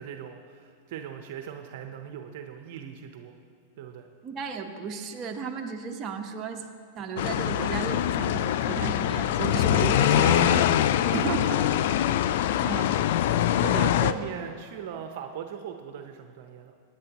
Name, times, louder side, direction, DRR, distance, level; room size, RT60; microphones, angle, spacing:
voice 1, 0.0-3.3 3.8-4.1 10.0-10.7 11.0-11.8 13.6-16.7, right 8 dB, 60° right, 5 dB, 0.8 m, -38 dB
voice 2, 4.2-6.7 6.9-10.6 11.1-11.7 12.6-13.0 13.7-13.9, right 5 dB, 35° right, 3 dB, 1.0 m, -34 dB
sound 1, 7.2-14.1, left 11 dB, 65° left, 0.4 m, -23 dB
17.5 x 10.5 x 3.0 m, 2.5 s
hypercardioid pair, 110°, 0 cm